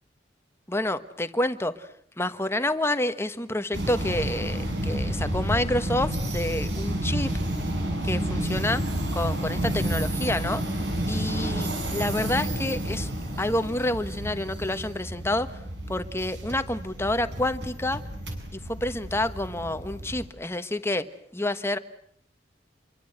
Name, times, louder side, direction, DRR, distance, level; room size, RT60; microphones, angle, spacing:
voice 1, 0.7-1.9 2.2-7.3 8.0-8.8 9.1-10.6 11.1-13.1 13.4-15.6 15.9-18.0 18.5-21.1 21.3-21.8, left 1 dB, 15° left, 10 dB, 1.3 m, -28 dB
sound 1, 3.7-20.3, right 1 dB, 65° right, 7.4 m, -30 dB
28.0 x 24.0 x 8.1 m, 0.69 s
head